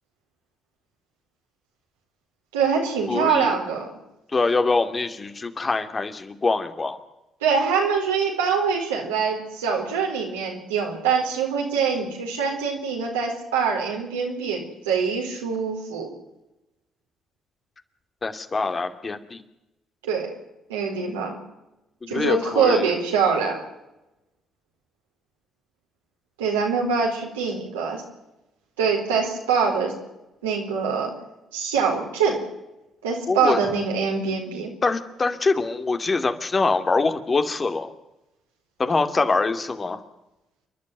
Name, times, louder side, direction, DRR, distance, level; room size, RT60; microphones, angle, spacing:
voice 1, 2.5-3.9 7.4-16.1 20.0-20.3 20.7-21.3 22.1-23.6 26.4-28.0 28.8-29.9 30.4-31.1 31.5-32.4 33.0-34.7, right 5 dB, 90° right, 0 dB, 4.3 m, -24 dB
voice 2, 3.1-3.5 4.3-7.0 18.2-19.4 22.0-22.9 33.3-33.6 34.8-37.9 38.8-40.0, left 3 dB, 35° left, 8 dB, 2.6 m, -24 dB
28.5 x 12.0 x 9.3 m, 0.96 s
hypercardioid pair, 45°, 0 cm